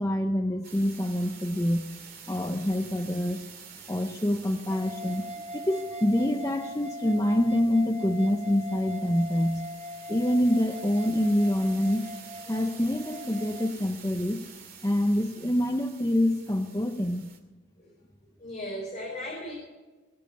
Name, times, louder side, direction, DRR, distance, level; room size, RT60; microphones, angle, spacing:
voice 1, 0.0-1.9 2.3-3.4 3.9-5.2 5.5-9.7 10.1-12.1 12.5-14.4 14.8-17.3, left 1 dB, 15° left, 3 dB, 0.8 m, -26 dB
sound 1, 0.6-17.4, right 6 dB, 50° right, 2.7 m, -49 dB
sound 2, 4.7-13.7, equal, 35° right, 1.5 m, -41 dB
voice 2, 18.4-19.5, equal, 40° left, -4 dB, 4.6 m, -37 dB
22.5 x 7.5 x 8.6 m, 1.2 s
head